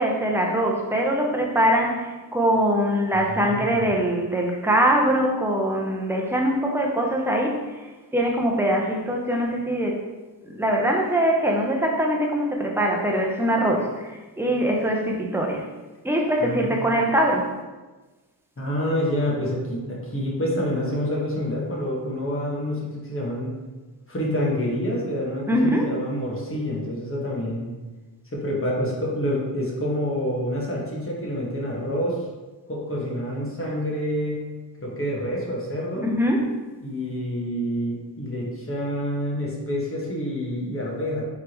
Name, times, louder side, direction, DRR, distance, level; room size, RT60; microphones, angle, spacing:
voice 1, 0.0-7.6 8.1-10.0 10.4-15.6 16.0-17.5 25.5-25.9 36.0-36.5, right 1 dB, 5° right, 0 dB, 0.7 m, -22 dB
voice 2, 3.3-3.8 16.4-17.2 18.6-23.5 24.1-27.7 28.3-32.2 32.7-34.5 34.8-36.1 36.8-41.2, equal, 30° left, -4 dB, 1.4 m, -27 dB
4.6 x 3.6 x 3.0 m, 1.2 s
wide cardioid pair, 90°, 42 cm